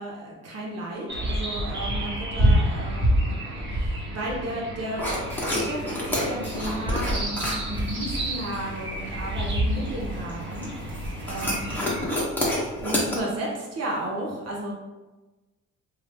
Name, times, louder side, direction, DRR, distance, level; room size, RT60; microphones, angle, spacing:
voice 1, 0.0-3.4 3.7-5.2 5.5-11.8 12.8-14.7, right 1 dB, 55° right, -3 dB, 0.7 m, -33 dB
sound 1, 1.1-12.0, equal, 40° right, 1.0 m, -28 dB
sound 2, 5.0-13.2, left 1 dB, 5° left, 0.8 m, -30 dB
2.7 x 2.1 x 3.3 m, 1.2 s
cardioid pair, 90°, 30 cm